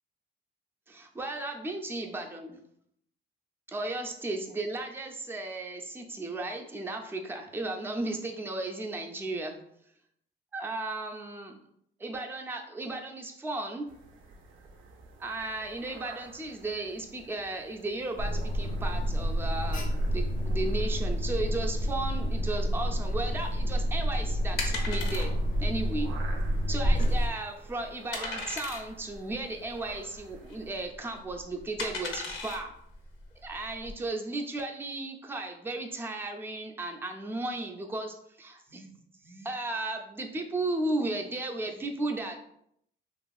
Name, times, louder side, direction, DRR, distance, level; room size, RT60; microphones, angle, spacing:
voice 1, 0.9-2.6 3.7-9.6 10.5-11.6 12.0-13.9 15.2-25.3 25.6-26.1 26.7-32.7 33.4-38.9 39.2-42.4, right 2 dB, 10° right, 3 dB, 0.4 m, -35 dB
sound 1, 13.9-30.9, right 4 dB, 80° right, 0.4 m, -51 dB
Alarm, 18.2-27.3, equal, 45° left, 0.5 m, -29 dB
sound 2, 23.3-33.9, left 3 dB, 90° left, 0.6 m, -39 dB
2.8 x 2.4 x 2.3 m, 0.70 s
cardioid pair, 90°, 20 cm